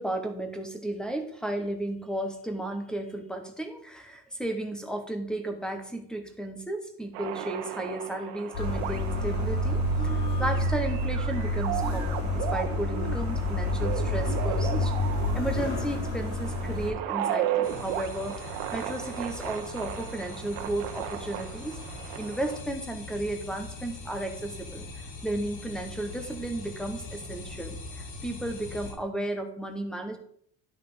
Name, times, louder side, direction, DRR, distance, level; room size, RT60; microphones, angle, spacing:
voice 1, 0.0-14.9 15.3-21.8 22.2-30.2, right 1 dB, ahead, 6 dB, 1.0 m, -34 dB
sound 1, 7.1-22.6, right 11 dB, 80° right, 1.2 m, -35 dB
sound 2, 8.5-16.9, left 1 dB, 90° left, 5.2 m, -28 dB
sound 3, 17.6-28.9, left 3 dB, 70° left, 3.2 m, -42 dB
11.0 x 5.5 x 5.5 m, 0.64 s
cardioid pair, 170°, 44 cm